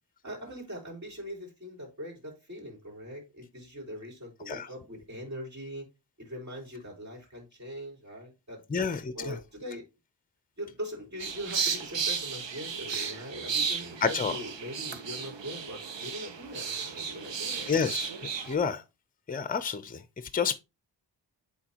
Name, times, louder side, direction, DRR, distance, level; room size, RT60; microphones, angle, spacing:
voice 1, 0.2-5.9 6.2-8.6 9.1-9.8 10.6-17.7, equal, 40° right, 4.6 m, -41 dB
voice 2, 8.7-9.4 14.0-14.3 17.7-18.1 18.5-18.8 19.3-20.0 20.3-20.6, left 6 dB, 20° left, 0.6 m, -29 dB
sound 1, 11.2-18.5, right 6 dB, 90° right, 1.0 m, -34 dB
8.6 x 4.3 x 2.9 m
wide cardioid pair, 95°, 43 cm